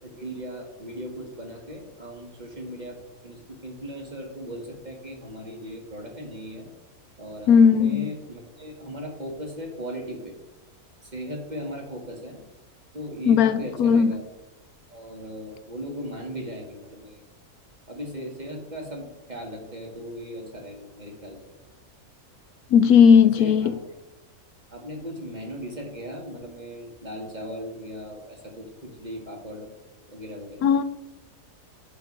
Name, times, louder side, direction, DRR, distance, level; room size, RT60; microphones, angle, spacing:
voice 1, 0.0-6.7 7.2-10.3 11.0-12.4 12.9-14.2 14.9-17.2 17.9-21.4 23.2-24.0 24.7-29.7 30.1-30.7, equal, 30° right, 1.7 m, -38 dB
voice 2, 7.5-8.1 13.3-14.1 22.7-23.7 30.6-30.8, left 7 dB, 80° left, 1.1 m, -16 dB
9.1 x 4.7 x 6.1 m
omnidirectional pair, 1.6 m